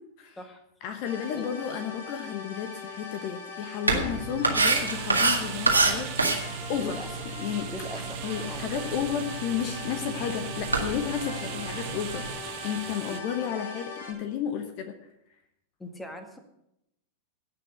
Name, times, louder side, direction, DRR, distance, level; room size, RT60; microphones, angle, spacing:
voice 1, 0.8-6.1 6.7-7.0 7.4-7.7 8.2-12.3 12.6-14.9, left 9 dB, 45° left, 8 dB, 1.1 m, -32 dB
sound 1, 1.0-14.1, left 3 dB, 60° left, 4.1 m, -41 dB
sound 2, 3.8-12.3, right 3 dB, 85° right, 1.9 m, -29 dB
sound 3, 4.7-13.2, right 13 dB, 45° right, 1.0 m, -40 dB
voice 2, 6.7-7.1 7.6-8.2 8.5-8.7 13.0-13.2 15.8-16.4, left 1 dB, 10° left, 7 dB, 1.8 m, -40 dB
17.0 x 5.8 x 8.0 m, 0.84 s
figure-of-eight pair, 90°, 0 cm